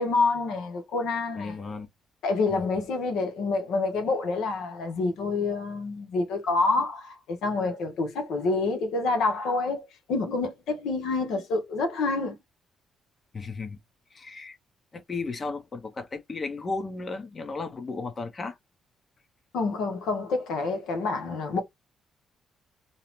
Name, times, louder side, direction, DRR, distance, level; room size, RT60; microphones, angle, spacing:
voice 1, 0.0-1.5 2.2-12.4 19.5-21.6, left 3 dB, 85° left, 0.8 m, -27 dB
voice 2, 1.4-1.9 2.5-2.7 13.3-13.8 14.1-14.6 14.9-18.6, left 3 dB, 35° left, 0.7 m, -34 dB
2.7 x 2.0 x 2.9 m
cardioid pair, 90°, 0 cm